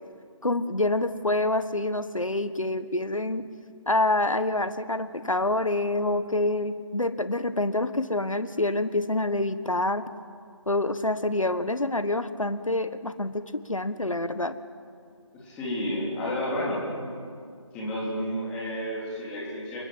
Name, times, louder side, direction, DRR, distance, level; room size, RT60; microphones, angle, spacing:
voice 1, 0.4-3.4 3.9-10.0 10.7-14.5, left 2 dB, 85° left, 11 dB, 1.5 m, -27 dB
voice 2, 15.3-16.8 17.7-19.8, equal, 5° left, -7 dB, 3.7 m, -31 dB
29.5 x 21.5 x 7.9 m, 2.3 s
figure-of-eight pair, 165°, 16 cm